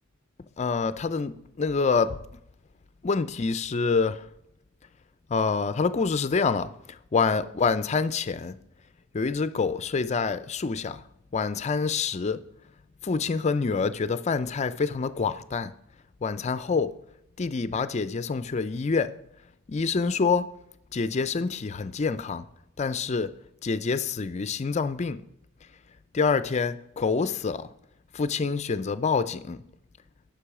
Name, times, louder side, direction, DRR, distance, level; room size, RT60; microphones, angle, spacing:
voice 1, 0.6-2.2 3.0-4.2 5.3-6.7 7.1-8.6 9.1-11.0 11.3-12.4 13.0-15.7 16.2-16.9 17.4-19.2 19.7-20.5 20.9-22.5 22.8-23.3 23.6-25.2 26.1-27.7 28.1-29.6, left 4 dB, 35° left, 0.4 m, -26 dB
10.0 x 6.1 x 4.8 m
head